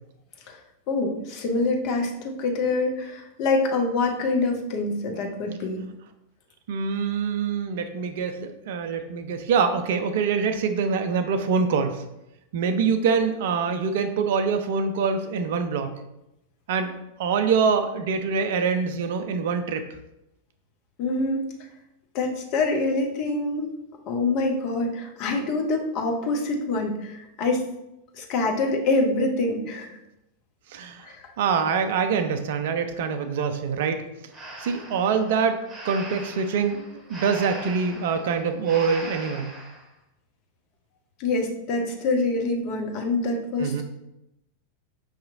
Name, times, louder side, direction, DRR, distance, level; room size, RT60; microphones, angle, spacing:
voice 1, 0.9-5.8 21.0-21.5 22.1-23.7 24.1-27.7 28.1-30.0 31.0-31.3 41.2-43.8, left 3 dB, 40° left, 2 dB, 0.7 m, -25 dB
voice 2, 6.7-12.0 12.5-15.9 16.7-16.9 17.2-19.9 30.7-34.0 34.6-35.6 35.8-39.5 43.6-43.8, right 5 dB, 55° right, 8 dB, 0.4 m, -25 dB
Breathing, 34.3-39.9, right 1 dB, 20° right, 0.9 m, -40 dB
5.5 x 2.8 x 2.5 m, 0.87 s
figure-of-eight pair, 90°, 0 cm